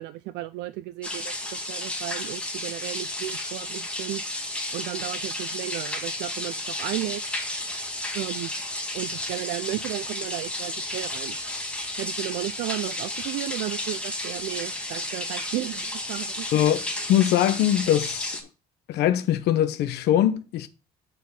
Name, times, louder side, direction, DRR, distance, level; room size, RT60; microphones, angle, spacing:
voice 1, 0.0-4.2 4.7-7.2 8.1-8.5 8.9-11.4 12.0-16.5, right 16 dB, 90° right, 0.5 m, -34 dB
sound 1, 1.0-18.4, left 1 dB, 5° left, 2.1 m, -32 dB
voice 2, 16.5-18.4 18.9-20.7, left 11 dB, 75° left, 0.8 m, -22 dB
7.9 x 4.6 x 5.4 m
cardioid pair, 110°, 17 cm